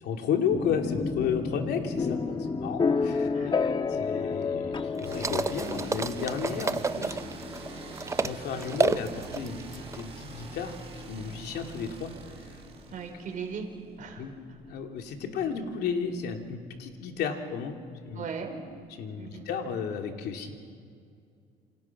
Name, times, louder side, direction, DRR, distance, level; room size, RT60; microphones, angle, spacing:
voice 1, 0.0-7.2 8.2-10.8 11.1-12.1 12.4-12.5 14.2-14.3 14.7-17.8 18.0-18.2 19.0-20.6, left 6 dB, 75° left, 3 dB, 2.8 m, -33 dB
sound 1, 0.5-14.3, left 5 dB, 30° left, 1.3 m, -33 dB
voice 2, 3.1-3.5 12.9-13.7 14.0-14.2 18.1-18.6 19.2-19.4, right 6 dB, 50° right, 3 dB, 5.0 m, -38 dB
sound 2, 5.0-8.3 8.6-10.0, right 4 dB, 15° right, 0.6 m, -30 dB
sound 3, 5.0-13.8, right 5 dB, 35° right, 6.4 m, -45 dB
28.5 x 26.0 x 6.0 m, 2.3 s
cardioid pair, 110°, 17 cm